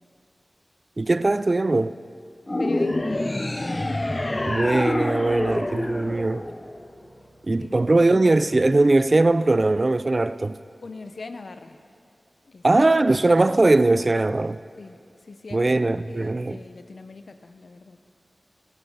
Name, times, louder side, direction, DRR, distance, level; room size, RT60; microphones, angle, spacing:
voice 1, 1.0-2.0 4.4-6.4 7.5-10.6 12.6-14.6 15.5-16.6, right 2 dB, 45° right, 0.4 m, -20 dB
sound 1, 2.5-7.0, left 1 dB, 30° left, 0.6 m, -27 dB
voice 2, 2.6-3.2 7.6-7.7 10.8-11.8 12.4-12.6 14.8-15.0 15.3-15.7 16.1-18.0, left 3 dB, 75° left, 0.8 m, -38 dB
sound 2, 4.7-10.1, right 1 dB, 80° right, 4.4 m, -55 dB
20.5 x 13.5 x 4.0 m
wide cardioid pair, 55°, 0 cm